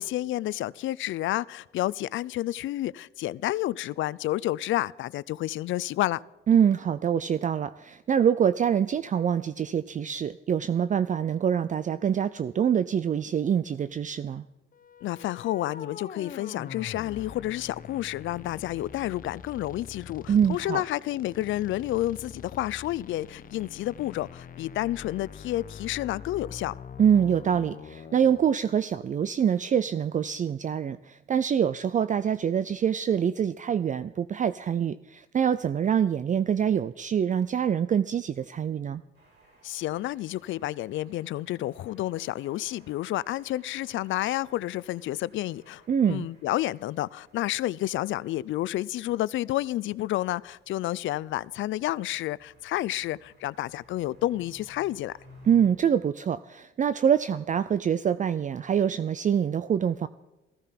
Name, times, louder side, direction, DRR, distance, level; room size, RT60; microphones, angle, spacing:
voice 1, 0.0-6.2 15.0-26.7 39.6-55.1, left 15 dB, 75° left, 0.5 m, -30 dB
voice 2, 6.5-14.4 20.3-20.8 27.0-39.0 45.9-46.3 55.5-60.1, right 8 dB, 40° right, 0.5 m, -25 dB
sound 1, 14.7-28.6, left 7 dB, 45° left, 1.0 m, -44 dB
sound 2, 39.1-55.7, left 1 dB, 60° right, 6.0 m, -58 dB
15.0 x 15.0 x 5.9 m
cardioid pair, 90°, 20 cm